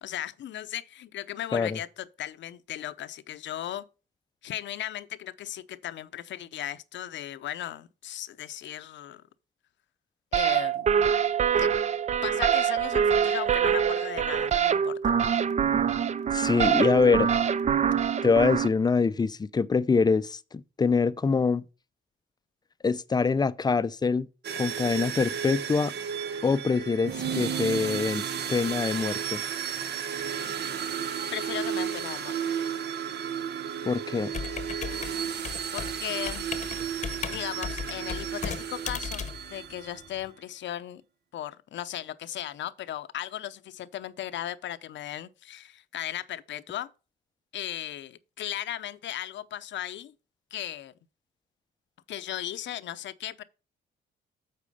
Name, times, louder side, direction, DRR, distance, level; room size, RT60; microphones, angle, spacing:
voice 1, 0.0-3.9 4.4-9.2 10.3-11.1 11.6-11.7 12.2-15.2 31.3-32.5 35.7-36.5 37.3-39.2 39.5-41.0 41.3-46.9 47.5-50.1 50.5-50.9 52.1-53.4, left 12 dB, 65° left, 0.7 m, -37 dB
sound 1, 10.3-18.7, right 8 dB, 35° right, 0.4 m, -24 dB
voice 2, 16.3-17.3 18.2-21.6 22.8-24.3 24.6-25.9 26.4-29.4 33.9-34.3, left 4 dB, 20° left, 0.5 m, -25 dB
sound 2, 24.4-40.1, right 8 dB, 55° right, 0.8 m, -33 dB
Computer keyboard, 34.3-40.3, left 6 dB, 35° left, 0.9 m, -37 dB
8.4 x 4.3 x 5.4 m
cardioid pair, 90°, 20 cm